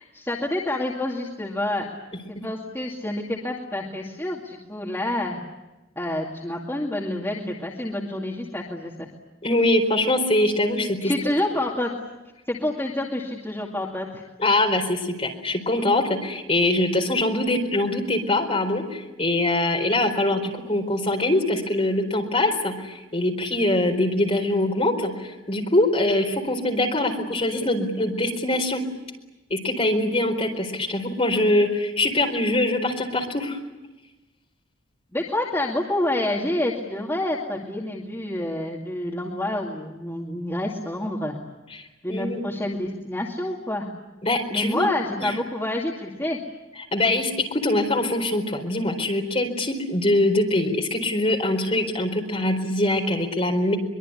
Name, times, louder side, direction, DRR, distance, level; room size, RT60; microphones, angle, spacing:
voice 1, 0.0-1.9 2.3-5.4 6.0-9.1 11.0-11.9 12.5-14.2 35.1-41.3 42.0-43.9 44.5-46.4, left 1 dB, 10° left, -3 dB, 2.4 m, -28 dB
voice 2, 9.4-11.1 14.4-28.8 29.5-33.6 41.7-41.8 42.1-42.4 44.2-44.9 45.2-45.3 46.9-53.8, left 1 dB, 30° left, 1 dB, 4.4 m, -23 dB
24.0 x 22.5 x 9.9 m, 1.1 s
head